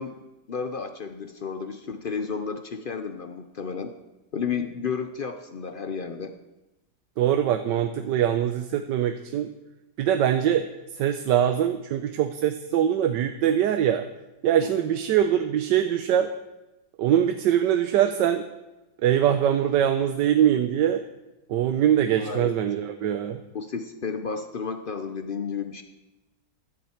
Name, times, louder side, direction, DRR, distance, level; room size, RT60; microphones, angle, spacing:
voice 1, 0.0-3.9 4.3-6.3 14.6-14.7 22.2-22.5 23.5-25.8, left 5 dB, 65° left, 8 dB, 0.5 m, -32 dB
voice 2, 7.2-9.5 10.0-10.7 10.9-14.1 14.4-16.3 17.0-18.4 19.0-21.0 21.5-23.4, right 10 dB, 85° right, 7 dB, 1.3 m, -23 dB
16.0 x 11.0 x 4.4 m, 1.0 s
omnidirectional pair, 1.9 m